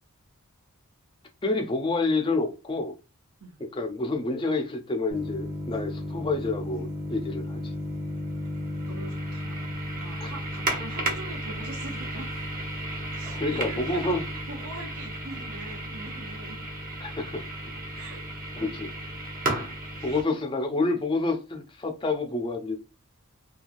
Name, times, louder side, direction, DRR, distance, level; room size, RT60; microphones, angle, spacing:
voice 1, 1.4-2.9 3.6-7.7 10.2-10.3 13.4-14.2 17.0-17.4 18.6-18.9 20.0-22.8, left 3 dB, 20° left, 0.4 m, -28 dB
sound 1, 5.1-20.2, right 1 dB, 40° right, 0.8 m, -33 dB
voice 2, 8.9-12.3 13.1-16.6 18.0-18.3 19.9-20.1, right 2 dB, 75° right, 0.7 m, -42 dB
3.0 x 2.3 x 2.5 m
head